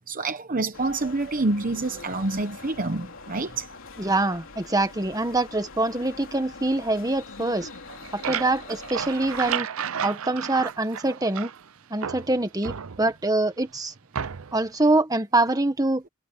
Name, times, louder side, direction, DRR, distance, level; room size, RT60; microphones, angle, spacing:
voice 1, 0.1-3.7, right 2 dB, 40° right, 0.9 m, -27 dB
sound 1, 0.7-9.5, left 3 dB, 60° left, 3.8 m, -43 dB
voice 2, 4.0-7.7 8.1-9.7 10.0-11.5 11.9-13.9 14.5-16.0, right 2 dB, 15° right, 1.6 m, -24 dB
sound 2, 7.7-11.7 12.0-13.3 14.1-14.7, right 8 dB, 70° right, 0.7 m, -32 dB
head